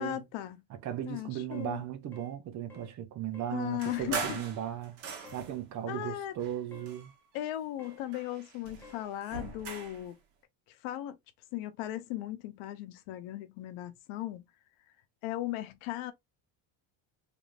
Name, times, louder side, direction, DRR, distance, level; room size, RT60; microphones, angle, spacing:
voice 1, 0.0-0.6 1.0-1.8 3.5-4.4 5.9-6.3 7.3-10.2 10.7-11.2 11.5-14.5 15.2-16.1, left 13 dB, 70° left, 0.9 m, -37 dB
voice 2, 0.7-5.0 5.3-7.1, right 11 dB, 35° right, 0.6 m, -37 dB
sound 1, 1.5-1.7 2.1-2.4 2.7-2.9 3.3-3.6 3.9-4.1 5.2-5.5 6.7-7.0 7.8-8.0 8.8-9.1, left 5 dB, 5° left, 0.7 m, -53 dB
sound 2, 3.8-5.7 6.3-7.5 7.8-10.1, right 5 dB, 55° right, 1.3 m, -41 dB
3.4 x 3.3 x 2.5 m
cardioid pair, 180°, 49 cm